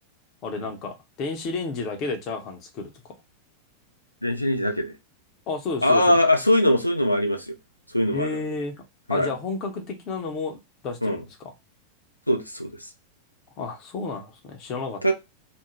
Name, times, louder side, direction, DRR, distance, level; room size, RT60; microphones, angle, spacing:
voice 1, 0.4-2.9 5.5-6.2 8.1-8.7 9.1-10.6 10.8-11.5 13.6-15.0, left 4 dB, 35° left, 0.7 m, -31 dB
voice 2, 4.2-4.9 5.8-7.5 7.9-8.4 9.1-9.3 11.0-11.2 12.3-12.9 15.0-15.1, left 1 dB, 85° left, 0.4 m, -22 dB
2.5 x 2.1 x 3.0 m
figure-of-eight pair, 90°, 0 cm